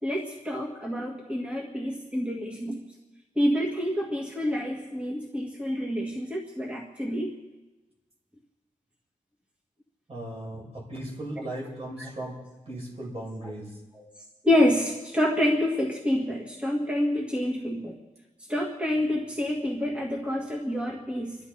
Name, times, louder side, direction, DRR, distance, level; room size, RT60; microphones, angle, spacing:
voice 1, 0.0-2.8 3.4-7.3 14.4-17.9 18.5-21.4, left 1 dB, 10° right, -2 dB, 2.1 m, -27 dB
voice 2, 10.1-12.4 12.6-13.8, right 1 dB, 45° right, -3 dB, 6.7 m, -37 dB
29.0 x 12.0 x 4.2 m, 1.1 s
wide cardioid pair, 85°, 14 cm